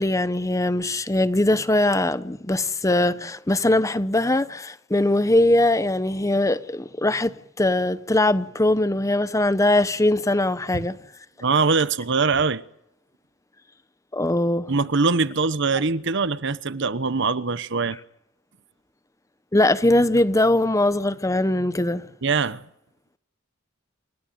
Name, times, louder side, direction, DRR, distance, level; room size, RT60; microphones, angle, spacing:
voice 1, 0.0-11.0 14.1-14.7 19.5-22.0, left 1 dB, 15° left, 0.9 m, -21 dB
voice 2, 11.4-12.6 14.7-18.0 22.2-22.6, right 4 dB, 60° right, 1.0 m, -22 dB
29.0 x 17.0 x 9.3 m
head